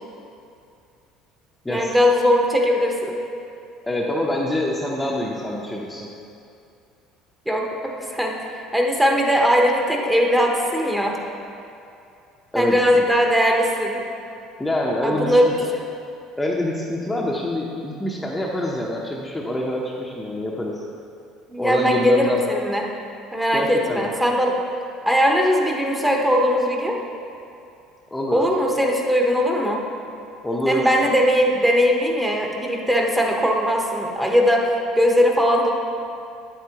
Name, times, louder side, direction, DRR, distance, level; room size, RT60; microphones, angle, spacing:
voice 1, 1.7-3.2 7.5-11.2 12.5-14.0 15.0-15.4 21.5-22.9 23.3-24.6 25.1-27.0 28.3-29.8 30.7-35.7, equal, 5° right, 1 dB, 1.0 m, -20 dB
voice 2, 3.8-6.1 12.5-13.0 14.6-15.5 16.4-20.8 21.6-22.4 23.5-24.1 28.1-28.5 30.4-30.9, left 1 dB, 10° left, -3 dB, 0.8 m, -25 dB
8.8 x 8.1 x 2.9 m, 2.6 s
supercardioid pair, 100°, 0 cm